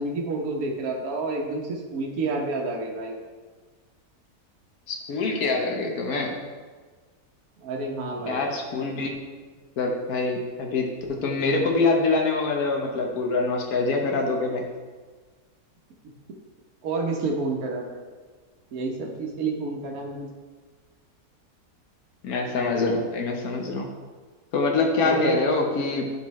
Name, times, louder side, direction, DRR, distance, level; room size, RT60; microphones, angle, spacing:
voice 1, 0.0-3.2 7.6-8.4 16.8-18.0 18.7-20.3 25.0-25.4, right 3 dB, 70° right, 0 dB, 1.4 m, -29 dB
voice 2, 4.9-6.4 8.2-9.2 9.8-14.7 22.2-23.9 24.5-26.1, left 3 dB, 75° left, 1 dB, 1.5 m, -25 dB
11.0 x 4.5 x 3.1 m, 1.4 s
omnidirectional pair, 1.6 m